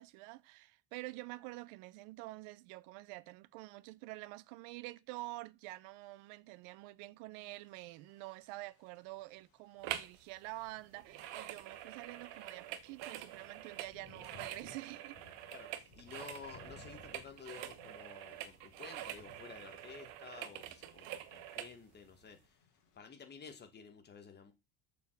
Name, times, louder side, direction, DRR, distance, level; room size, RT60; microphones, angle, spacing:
voice 1, 0.0-15.2, right 20 dB, 90° right, 0.8 m, -48 dB
Thunder / Rain, 7.3-23.0, left 6 dB, 45° left, 3.5 m, -64 dB
sound 1, 9.8-10.2 10.5-21.8 22.3-22.4, right 12 dB, 65° right, 1.2 m, -46 dB
voice 2, 15.5-22.6 22.9-24.5, left 6 dB, 20° left, 1.4 m, -52 dB
7.0 x 7.0 x 6.4 m
cardioid pair, 170°, 48 cm